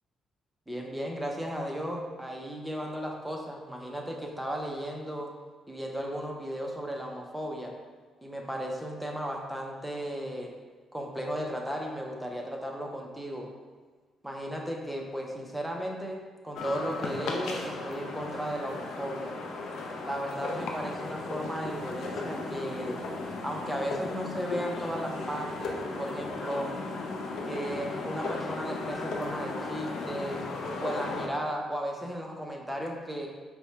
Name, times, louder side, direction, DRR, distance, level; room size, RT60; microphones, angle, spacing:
voice 1, 0.7-5.3 5.7-7.7 8.2-10.5 10.9-13.5 14.2-19.4 20.0-23.0 23.4-26.7 27.4-30.5 30.8-33.3, equal, 5° right, 0 dB, 0.7 m, -35 dB
sound 1, 16.5-31.3, left 3 dB, 75° left, 0.6 m, -36 dB
5.1 x 2.2 x 4.6 m, 1.4 s
cardioid pair, 90°, 0 cm